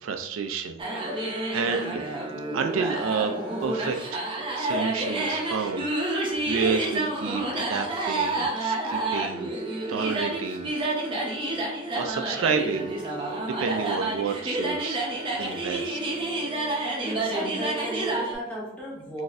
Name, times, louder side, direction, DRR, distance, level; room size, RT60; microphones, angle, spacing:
voice 1, 0.0-2.0 2.5-3.4 3.6-9.6 9.9-10.7 11.0-11.2 11.9-12.9 13.3-16.0, right 5 dB, 80° right, 6 dB, 0.4 m, -30 dB
sound 1, 0.8-18.3, right 2 dB, 25° right, 0.6 m, -29 dB
voice 2, 17.0-19.2, right 1 dB, 5° left, -6 dB, 1.0 m, -34 dB
3.9 x 2.6 x 2.5 m, 0.75 s
head